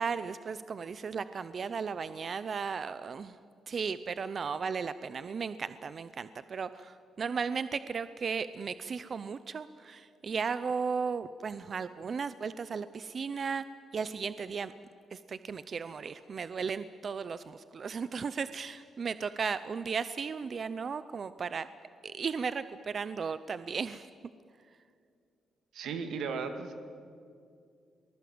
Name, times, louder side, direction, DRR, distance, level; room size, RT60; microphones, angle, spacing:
voice 1, 0.0-3.4 3.7-13.6 13.9-14.7 15.1-21.7 22.0-24.1, right 5 dB, 40° right, 13 dB, 0.6 m, -35 dB
voice 2, 25.7-26.8, right 5 dB, 85° right, 7 dB, 2.1 m, -35 dB
24.5 x 19.5 x 7.8 m, 2.3 s
cardioid pair, 140°, 0 cm